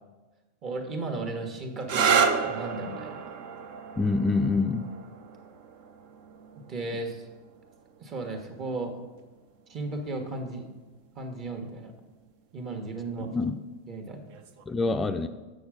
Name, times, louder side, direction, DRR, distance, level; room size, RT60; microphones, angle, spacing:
voice 1, 0.6-3.2 6.5-7.3 8.0-9.0 9.7-10.6 11.1-11.9 12.5-13.3 13.9-14.3, right 2 dB, 40° right, 4 dB, 1.4 m, -35 dB
sound 1, 1.8-9.3 10.3-10.8 14.3-14.6, right 6 dB, 60° right, 0.6 m, -31 dB
voice 2, 4.0-4.9 13.2-13.6 14.7-15.3, left 3 dB, 15° left, 7 dB, 0.4 m, -26 dB
7.1 x 6.4 x 4.9 m, 1.2 s
hypercardioid pair, 95°, 0 cm